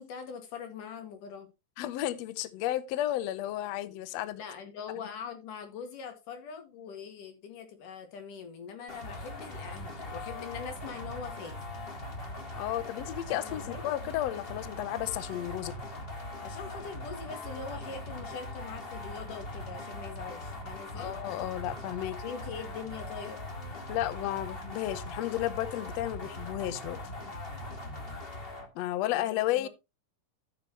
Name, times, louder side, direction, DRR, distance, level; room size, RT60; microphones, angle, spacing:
voice 1, 0.0-1.5 4.4-11.6 13.3-13.8 16.4-21.2 22.2-23.4 29.1-29.7, left 6 dB, 90° left, 3.6 m, -42 dB
voice 2, 1.8-4.4 12.6-15.8 20.9-22.2 23.9-27.0 28.8-29.7, left 13 dB, 70° left, 1.7 m, -33 dB
sound 1, 8.9-28.7, left 1 dB, 25° left, 1.6 m, -41 dB
14.5 x 6.9 x 3.0 m
omnidirectional pair, 3.6 m